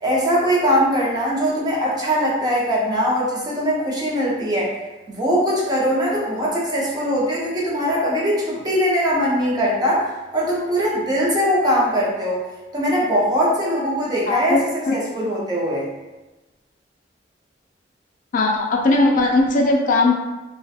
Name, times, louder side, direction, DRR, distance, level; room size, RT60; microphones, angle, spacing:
voice 1, 0.0-4.7 5.1-10.1 10.3-12.4 12.7-14.6 14.9-15.9, equal, 25° right, -5 dB, 0.6 m, -21 dB
voice 2, 14.3-14.6 14.9-15.0 18.3-20.1, left 2 dB, 45° left, 0 dB, 0.3 m, -18 dB
2.4 x 2.2 x 2.6 m, 1.1 s
head